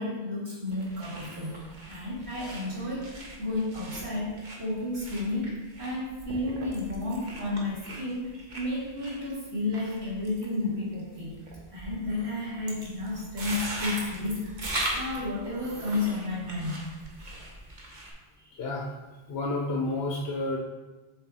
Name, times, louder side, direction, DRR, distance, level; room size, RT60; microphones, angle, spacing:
voice 1, 0.0-1.6 1.9-3.1 3.4-5.5 5.8-11.4 11.7-16.8 18.4-18.5, left 2 dB, 80° right, -7 dB, 2.3 m, -32 dB
sound 1, 0.7-18.1, right 1 dB, 50° right, 1.1 m, -40 dB
voice 2, 18.5-18.9 19.3-20.6, left 2 dB, 85° left, -1 dB, 0.9 m, -30 dB
6.6 x 3.6 x 4.1 m, 1.2 s
omnidirectional pair, 1.1 m